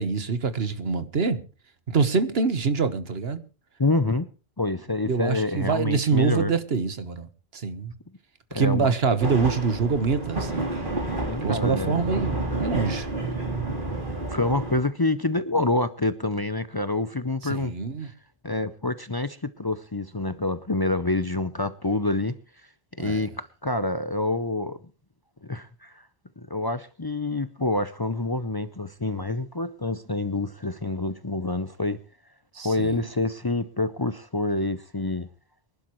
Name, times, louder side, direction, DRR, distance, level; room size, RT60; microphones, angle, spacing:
voice 1, 0.0-1.4 1.9-3.4 5.1-7.3 7.5-7.9 8.5-10.7 11.4-13.1 17.4-18.1 23.0-23.2 32.5-33.0, right 5 dB, 75° right, 1.5 m, -25 dB
voice 2, 3.8-4.3 4.6-6.5 8.5-8.9 11.3-12.0 14.0-17.7 18.0-18.1 18.4-22.3 23.0-24.8 25.4-26.1 26.4-32.0 32.6-35.3, left 2 dB, 25° left, 0.6 m, -27 dB
sound 1, 9.2-14.8, right 2 dB, 55° right, 3.8 m, -30 dB
24.0 x 11.5 x 3.1 m
omnidirectional pair, 1.0 m